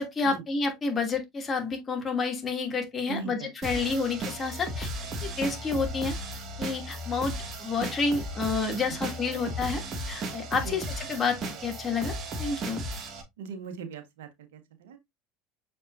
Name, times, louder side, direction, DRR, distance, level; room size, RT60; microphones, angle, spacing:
voice 1, 0.0-4.9 5.2-6.2 6.6-11.4 11.6-12.8, left 4 dB, 25° left, 2.8 m, -29 dB
voice 2, 3.0-3.5 8.9-9.0 10.5-10.8 13.4-15.0, right 5 dB, 80° right, 1.6 m, -40 dB
sound 1, 3.6-13.2, right 1 dB, 40° right, 2.3 m, -35 dB
6.7 x 5.2 x 2.7 m
hypercardioid pair, 85°, 0 cm